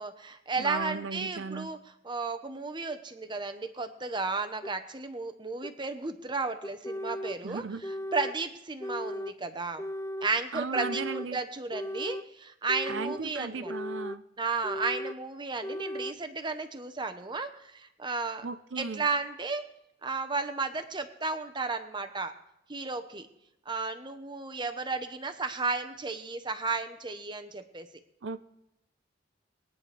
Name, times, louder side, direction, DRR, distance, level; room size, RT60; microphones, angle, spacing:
voice 1, 0.0-1.8 2.0-9.8 10.2-13.7 14.4-18.5 18.8-19.7 20.0-22.3 22.7-23.3 23.7-27.9, right 4 dB, 25° right, 8 dB, 0.9 m, -33 dB
voice 2, 0.6-1.7 7.4-7.8 10.5-11.4 12.9-14.2 18.4-19.1 28.2-28.4, right 4 dB, 80° right, 11 dB, 0.6 m, -36 dB
sound 1, 4.6-4.7 5.6-5.7 6.6-7.4 7.8-8.4 8.8-9.4 9.8-10.3 10.7-11.3 11.7-12.3 12.7-13.2 13.6-14.2 14.6-15.2 15.6-16.2, equal, 15° left, 0.4 m, -36 dB
22.0 x 9.5 x 3.4 m, 0.83 s
head